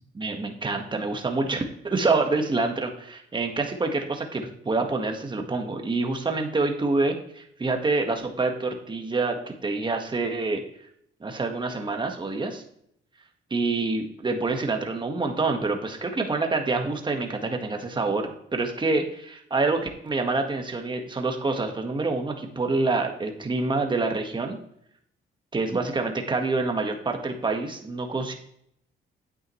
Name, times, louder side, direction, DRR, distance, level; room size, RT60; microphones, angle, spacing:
voice 1, 0.1-10.6 11.2-12.6 13.5-24.6 25.5-28.3, right 3 dB, 25° right, 4 dB, 1.5 m, -27 dB
9.0 x 8.8 x 3.1 m, 0.70 s
cardioid pair, 90°, 20 cm